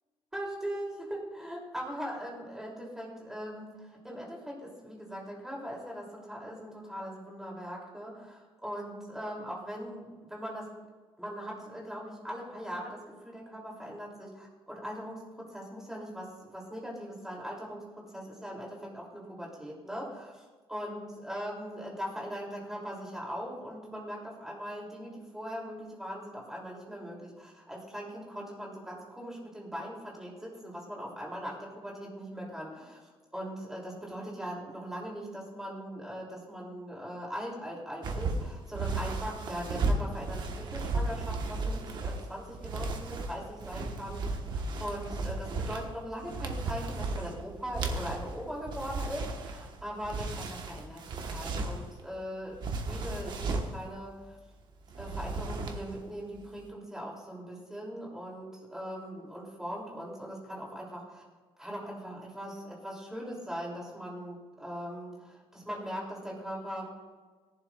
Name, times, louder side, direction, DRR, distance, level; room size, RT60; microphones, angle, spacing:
voice 1, 0.3-10.7 11.2-33.0 33.3-54.4 55.0-61.2 61.6-66.9, equal, 5° right, -3 dB, 2.9 m, -40 dB
sound 1, 38.0-52.0 52.5-53.8 54.9-56.0 56.3-56.6, right 3 dB, 50° right, 1.2 m, -35 dB
18.0 x 11.5 x 2.4 m, 1.4 s
cardioid pair, 175°, 10 cm